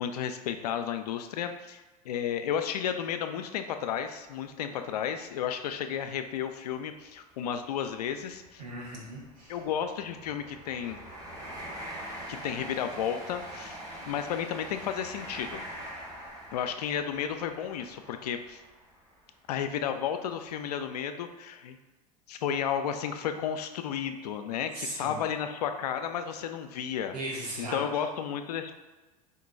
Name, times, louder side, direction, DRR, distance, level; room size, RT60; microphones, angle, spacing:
voice 1, 0.0-8.6 9.5-11.0 12.3-13.8 14.1-15.6 16.5-18.6 19.5-21.8 22.3-27.1 27.6-28.7, left 8 dB, 80° left, 7 dB, 0.4 m, -33 dB
sound 1, 5.8-5.9 6.2-6.4 7.1-19.8 20.3-20.5, right 1 dB, 20° right, 1.3 m, -44 dB
voice 2, 8.6-9.6 24.7-25.2 27.1-27.8, right 1 dB, 90° right, -3 dB, 1.2 m, -37 dB
3.7 x 2.2 x 3.9 m, 1.2 s
hypercardioid pair, 85°, 20 cm